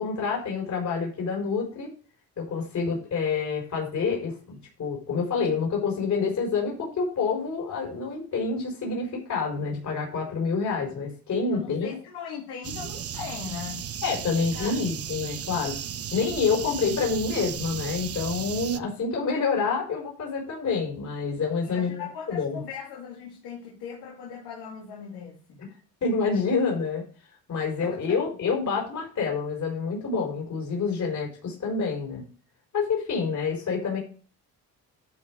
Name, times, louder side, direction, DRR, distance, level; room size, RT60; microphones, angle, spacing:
voice 1, 0.0-1.9 2.4-12.0 14.0-15.7 16.1-22.6 26.0-27.0 27.5-32.2 32.7-34.0, left 5 dB, 50° left, 4.5 m, -27 dB
voice 2, 11.5-13.9 14.3-14.8 21.6-25.6 27.8-28.2, left 7 dB, 80° left, 2.7 m, -39 dB
sound 1, 12.6-18.8, right 9 dB, 40° right, 0.7 m, -35 dB
11.5 x 4.9 x 4.7 m
cardioid pair, 85°, 37 cm